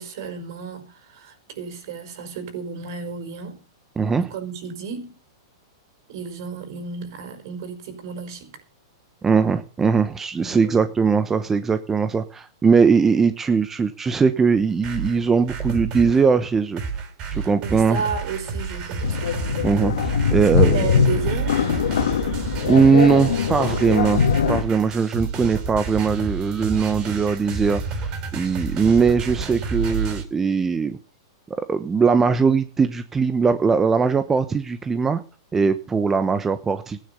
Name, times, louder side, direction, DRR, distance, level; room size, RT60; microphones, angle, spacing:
voice 1, 0.0-3.6 4.2-5.2 6.1-8.6 10.4-10.9 17.3-19.4 20.5-21.9, right 6 dB, 60° right, 5.4 m, -32 dB
voice 2, 4.0-4.3 9.2-16.8 17.3-18.0 19.6-20.7 22.6-24.2 24.5-31.0 31.7-35.2 35.5-37.0, right 5 dB, 15° right, 1.0 m, -20 dB
sound 1, 14.6-16.3 16.8-30.2, right 5 dB, 35° right, 4.2 m, -30 dB
sound 2, 19.0-24.6, left 8 dB, 85° left, 1.8 m, -22 dB
15.5 x 10.0 x 6.8 m
hypercardioid pair, 140°, 2 cm